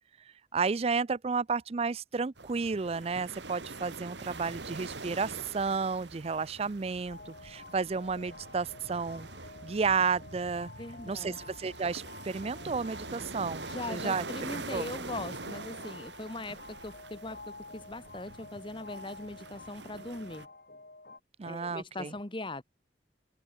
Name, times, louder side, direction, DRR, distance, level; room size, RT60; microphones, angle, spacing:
voice 1, 0.2-9.3 9.6-10.7 11.1-14.9 21.4-22.1, right 5 dB, 35° right, 0.4 m, -32 dB
sound 1, 2.4-20.5, right 3 dB, 80° right, 2.9 m, -44 dB
sound 2, 7.1-21.2, left 3 dB, 55° left, 6.9 m, -50 dB
voice 2, 10.8-11.4 13.7-20.5 21.4-22.6, left 2 dB, 30° left, 1.4 m, -40 dB
head